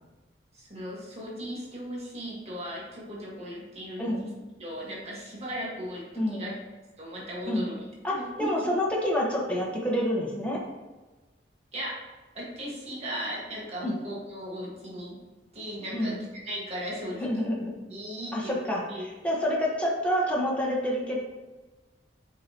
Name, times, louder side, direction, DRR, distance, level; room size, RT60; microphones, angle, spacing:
voice 1, 0.5-4.3 4.6-6.5 7.0-8.7 11.7-12.0 12.3-15.2 15.5-17.3 17.9-18.6 18.9-19.0, equal, 35° right, -5 dB, 1.8 m, -37 dB
voice 2, 4.0-4.3 6.1-6.4 7.5-7.7 8.0-10.6 13.8-14.0 15.9-16.2 17.2-17.7 18.3-21.2, equal, 5° left, -3 dB, 1.3 m, -28 dB
7.7 x 5.3 x 3.0 m, 1.2 s
head